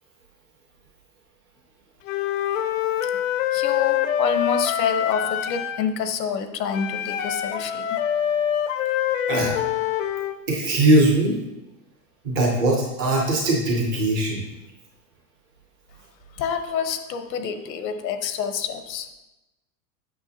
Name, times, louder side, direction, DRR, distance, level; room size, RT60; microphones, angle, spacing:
Wind instrument woodwind instrument, 2.1-5.9 6.7-10.4, left 10 dB, 50° left, 0.5 m, -25 dB
voice 1, 3.5-8.0 16.4-19.1, left 7 dB, 85° left, 8 dB, 1.0 m, -27 dB
voice 2, 10.5-11.3 12.2-14.4, right 1 dB, 15° right, -2 dB, 0.4 m, -20 dB
8.0 x 6.2 x 2.7 m, 0.98 s
supercardioid pair, 165°, 49 cm